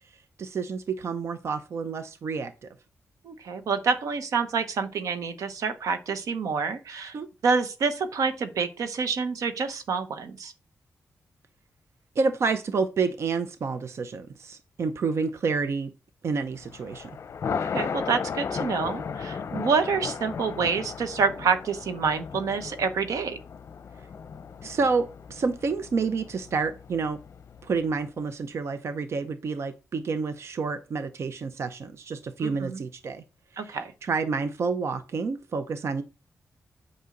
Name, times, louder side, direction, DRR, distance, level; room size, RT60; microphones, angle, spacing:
voice 1, 0.4-2.7 7.1-7.3 12.2-15.9 16.2-17.1 24.6-27.2 27.6-33.2 33.5-36.0, right 4 dB, 55° right, 10 dB, 0.6 m, -29 dB
voice 2, 3.2-7.2 7.4-10.5 17.5-23.4 32.4-32.8 33.6-33.9, right 5 dB, 85° right, 9 dB, 1.0 m, -27 dB
Thunder, 16.6-27.9, left 6 dB, 55° left, 0.7 m, -36 dB
8.4 x 5.5 x 3.8 m, 0.31 s
wide cardioid pair, 130°, 6 cm